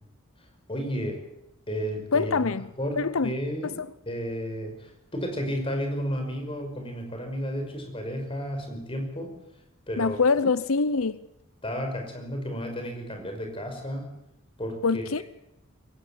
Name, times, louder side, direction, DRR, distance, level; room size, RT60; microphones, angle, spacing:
voice 1, 0.7-1.2 1.7-2.5 2.8-3.8 4.1-9.4 9.9-10.2 11.6-14.1 14.6-15.2, equal, 25° left, 5.6 m, -32 dB
voice 2, 2.1-2.7 3.0-3.3 3.6-3.9 10.0-11.2 14.8-15.2, left 4 dB, 80° left, 0.7 m, -24 dB
22.5 x 17.0 x 8.6 m
head